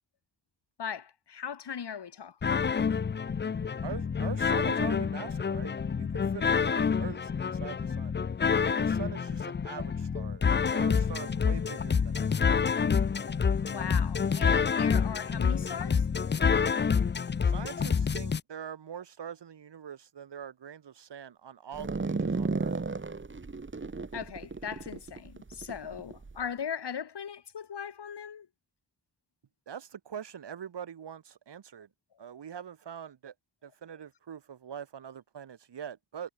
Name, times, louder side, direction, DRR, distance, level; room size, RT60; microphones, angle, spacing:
voice 1, 0.8-2.7 13.7-16.1 24.1-28.5, left 7 dB, 80° left, 3.5 m, -39 dB
sound 1, 2.4-18.4, left 6 dB, 25° left, 0.5 m, -28 dB
voice 2, 3.8-8.2 8.7-10.4 10.7-12.6 17.4-22.8 29.7-31.9 32.2-33.3 33.6-36.3, right 8 dB, 90° right, 3.7 m, -43 dB
sound 2, 21.7-26.4, right 3 dB, 30° right, 1.7 m, -34 dB
cardioid pair, 65°, 40 cm